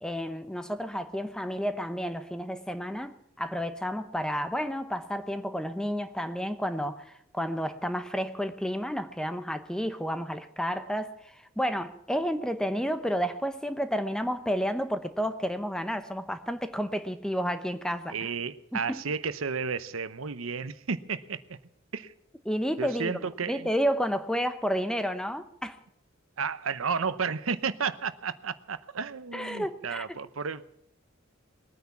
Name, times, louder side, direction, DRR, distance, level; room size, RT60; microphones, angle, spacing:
voice 1, 0.0-18.1 18.7-19.0 22.5-23.2 23.5-25.8 29.3-30.1, equal, 5° left, 0.8 m, -31 dB
voice 2, 18.1-21.6 21.9-22.1 22.8-23.7 26.4-30.6, right 5 dB, 90° right, 0.8 m, -32 dB
20.5 x 9.5 x 7.2 m
head